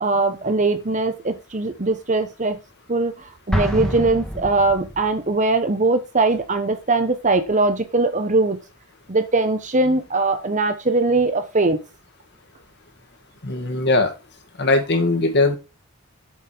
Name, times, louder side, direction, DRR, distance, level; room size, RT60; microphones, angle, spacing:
voice 1, 0.0-2.6 2.9-8.6 9.1-11.8, right 3 dB, 35° right, 0.9 m, -21 dB
Explosion, 3.5-5.2, equal, 5° left, 1.4 m, -26 dB
voice 2, 13.4-14.1 14.6-15.6, left 2 dB, 50° left, 1.7 m, -19 dB
7.4 x 5.5 x 4.4 m
head